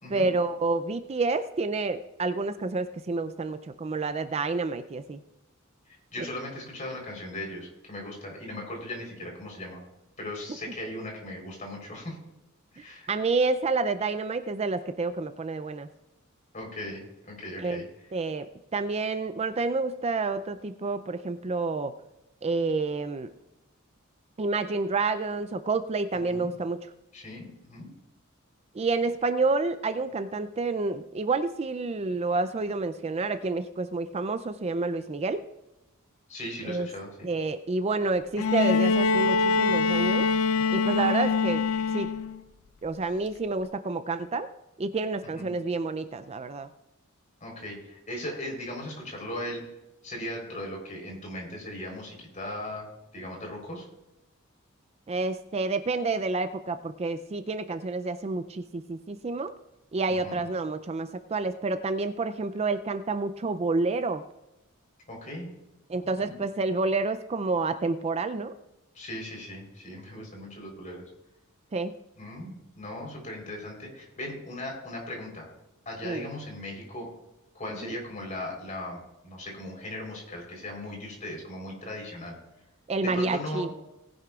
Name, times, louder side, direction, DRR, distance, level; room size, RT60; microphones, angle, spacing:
voice 1, 0.1-5.2 13.1-15.9 17.6-17.8 18.1-21.9 22.4-23.3 24.4-26.9 28.7-35.4 36.6-36.9 37.2-40.3 40.7-41.6 41.9-42.1 42.8-44.5 44.8-46.7 55.1-59.5 59.9-64.2 65.9-68.5 71.7-71.9 76.0-76.2 77.8-77.9 82.9-83.7, right 3 dB, 30° right, 11 dB, 0.4 m, -29 dB
voice 2, 5.9-9.8 10.2-12.2 12.7-13.1 16.5-17.8 26.2-26.5 27.1-27.9 36.3-37.3 45.3-45.5 47.4-49.6 50.0-52.9 53.1-53.9 60.1-60.4 65.1-65.5 66.2-66.4 68.9-71.0 72.2-75.5 75.9-77.1 77.5-82.4 83.0-83.7, left 1 dB, 35° left, 1 dB, 3.9 m, -38 dB
Bowed string instrument, 38.4-42.4 43.7-43.8, left 4 dB, 90° left, 0.5 m, -24 dB
19.0 x 10.5 x 2.4 m, 0.96 s
head